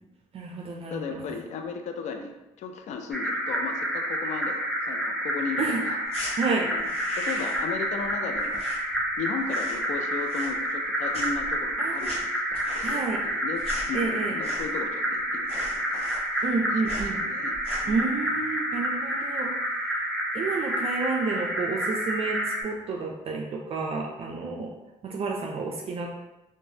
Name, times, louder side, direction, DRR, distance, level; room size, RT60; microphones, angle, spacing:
voice 1, 0.3-1.4 5.6-5.8 6.4-6.7 11.8-12.2 12.8-13.2 13.9-14.3 16.4-17.2 17.9-20.0 20.3-24.7 25.0-26.1, right 4 dB, 50° right, 0 dB, 0.4 m, -30 dB
voice 2, 0.9-6.0 6.6-16.5 16.8-17.6 17.8-18.0, left 5 dB, 65° left, 5 dB, 0.4 m, -36 dB
sound 1, 3.1-22.6, right 1 dB, ahead, 0.6 m, -29 dB
sound 2, 6.1-6.3 6.8-7.7 8.0-9.2 9.4-9.9 10.2-10.9 11.1-14.9 15.2-15.3 15.5-16.6 16.8-17.1 17.5-18.0, left 1 dB, 50° left, 0.8 m, -40 dB
3.1 x 2.1 x 2.7 m, 0.98 s
cardioid pair, 80°, 13 cm